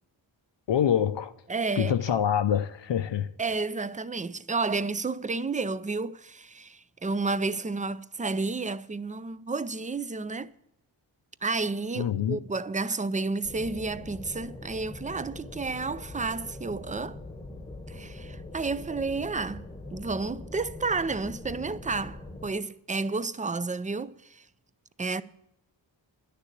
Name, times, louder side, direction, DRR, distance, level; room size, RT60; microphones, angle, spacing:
voice 1, 0.7-1.3 1.8-3.3 12.0-12.4, left 9 dB, 65° left, 0.6 m, -25 dB
voice 2, 1.5-2.0 3.4-10.5 11.4-17.2 17.9-19.6 19.9-24.4 25.0-25.2, right 3 dB, 15° right, 0.4 m, -31 dB
sound 1, 13.4-22.5, left 2 dB, 10° left, 1.0 m, -42 dB
10.5 x 6.8 x 8.6 m
wide cardioid pair, 85°, 47 cm